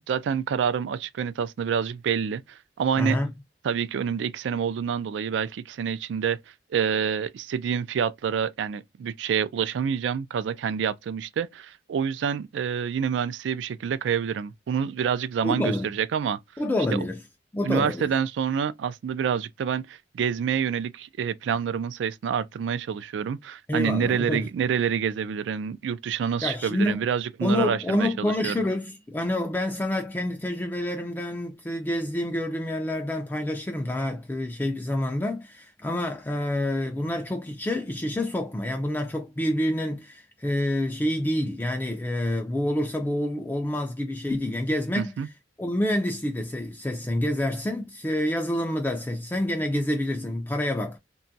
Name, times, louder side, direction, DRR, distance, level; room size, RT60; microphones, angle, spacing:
voice 1, 0.1-3.2 3.6-6.4 6.7-16.4 16.9-17.0 17.6-28.6 44.9-45.3, right 7 dB, 80° right, 0.3 m, -27 dB
voice 2, 3.0-3.3 15.4-15.9 16.6-17.2 17.5-18.1 23.7-24.5 26.4-27.0 27.4-45.1 45.6-51.0, left 1 dB, 10° left, 0.3 m, -27 dB
2.9 x 2.3 x 2.6 m
head